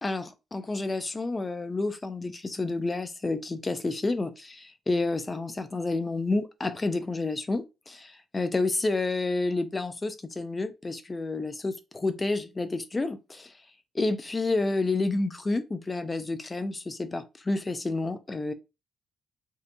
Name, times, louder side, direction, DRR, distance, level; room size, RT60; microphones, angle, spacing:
voice 1, 0.0-13.5 13.9-18.5, left 2 dB, 25° left, 0.3 m, -30 dB
2.6 x 2.1 x 2.5 m
cardioid pair, 90°, 0 cm